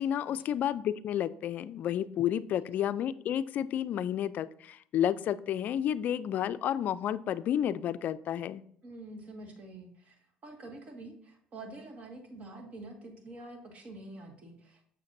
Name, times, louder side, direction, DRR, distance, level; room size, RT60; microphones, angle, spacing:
voice 1, 0.0-8.6, left 10 dB, 60° left, 15 dB, 0.3 m, -31 dB
voice 2, 8.8-14.8, right 2 dB, 45° right, 3 dB, 1.7 m, -47 dB
7.3 x 6.5 x 2.6 m, 0.64 s
supercardioid pair, 85°, 3 cm